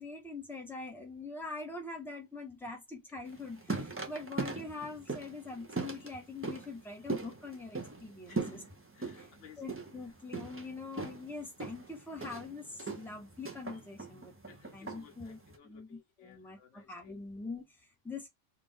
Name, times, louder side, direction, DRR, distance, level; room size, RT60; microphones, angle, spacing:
voice 1, 0.0-8.4 9.2-9.3 9.6-15.4 15.6-18.3, left 3 dB, ahead, 1.0 m, -44 dB
sound 1, 3.3-15.6, right 3 dB, 20° right, 0.4 m, -41 dB
voice 2, 8.3-9.8 14.5-17.2, left 8 dB, 85° left, 1.2 m, -58 dB
3.4 x 2.5 x 3.5 m
omnidirectional pair, 1.2 m